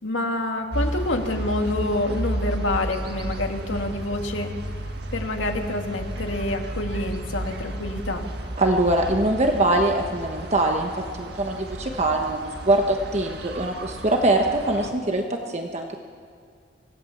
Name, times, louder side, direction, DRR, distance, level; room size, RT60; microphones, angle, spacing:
voice 1, 0.0-4.5 5.1-8.2, left 1 dB, 85° left, 3 dB, 2.2 m, -27 dB
sound 1, 0.7-14.9, right 1 dB, 55° right, 1.8 m, -33 dB
voice 2, 8.6-15.9, right 1 dB, 35° right, 3 dB, 1.2 m, -23 dB
25.0 x 17.5 x 7.2 m, 2.2 s
head